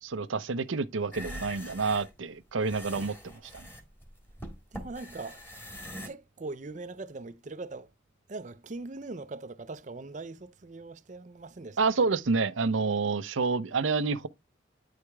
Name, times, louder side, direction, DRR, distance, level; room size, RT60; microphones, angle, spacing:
voice 1, 0.0-3.7 11.8-14.3, right 4 dB, 85° right, 0.7 m, -28 dB
sound 1, 1.0-6.1, equal, 10° left, 1.7 m, -43 dB
voice 2, 4.7-5.4 6.1-7.9 8.3-11.8, right 3 dB, 40° right, 0.5 m, -41 dB
9.6 x 4.8 x 3.4 m
head